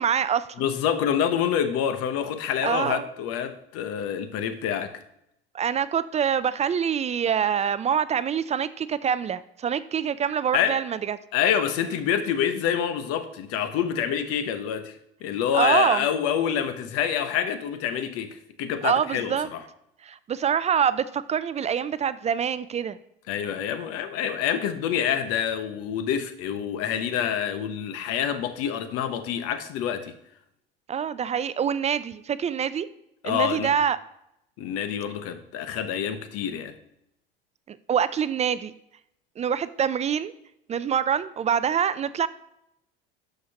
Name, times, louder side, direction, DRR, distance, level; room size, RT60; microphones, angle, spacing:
voice 1, 0.0-0.5 2.6-3.1 5.5-11.2 15.5-16.1 18.8-19.5 20.0-23.0 30.9-32.9 33.2-34.0 37.7-38.7 39.4-40.3 40.7-42.3, right 8 dB, 25° right, 0.4 m, -25 dB
voice 2, 0.6-5.0 10.5-10.8 11.3-19.6 23.3-30.2 33.2-33.7 34.6-36.7, left 9 dB, 55° left, 1.0 m, -27 dB
12.5 x 5.2 x 2.9 m
hypercardioid pair, 75°, 29 cm